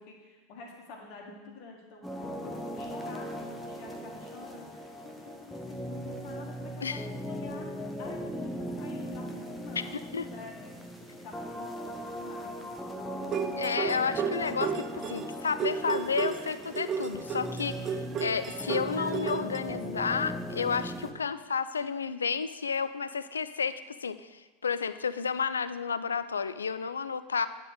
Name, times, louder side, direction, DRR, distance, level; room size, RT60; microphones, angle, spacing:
voice 1, 0.0-2.0 2.4-7.7 8.0-10.0 10.3-10.7 11.2-12.6, left 4 dB, 50° left, 0 dB, 1.7 m, -48 dB
sound 1, 2.0-21.1, equal, 5° left, 0.9 m, -38 dB
sound 2, 13.2-19.6, right 7 dB, 35° right, 0.4 m, -33 dB
voice 2, 13.6-27.5, left 6 dB, 75° left, 14 dB, 0.3 m, -31 dB
9.9 x 3.8 x 6.5 m, 1.2 s
figure-of-eight pair, 80°, 0 cm